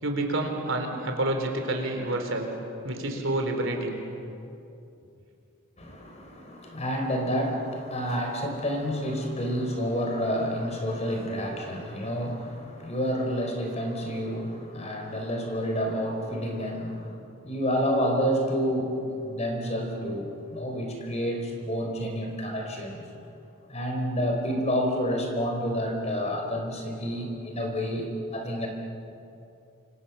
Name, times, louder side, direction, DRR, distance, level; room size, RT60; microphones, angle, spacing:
voice 1, 0.0-2.5 2.8-4.0, right 1 dB, 60° right, 4 dB, 4.1 m, -28 dB
voice 2, 5.8-23.1 23.7-28.7, equal, 30° left, 2 dB, 4.4 m, -29 dB
28.5 x 27.0 x 7.2 m, 2.7 s
head